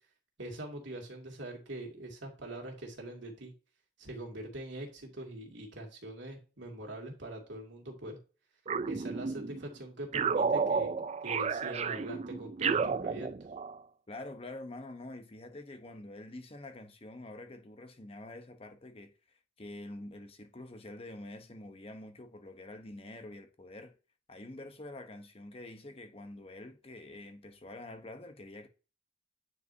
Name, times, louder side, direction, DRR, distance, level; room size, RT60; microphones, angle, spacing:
voice 1, 0.4-3.5 4.0-8.2 8.8-10.9 11.2-13.3, right 1 dB, 75° right, 2.5 m, -43 dB
sound 1, 8.7-9.6 10.1-13.8, right 5 dB, 35° right, 0.3 m, -32 dB
voice 2, 14.1-23.9 24.3-28.7, left 2 dB, 30° left, 0.9 m, -46 dB
9.4 x 4.8 x 2.7 m
head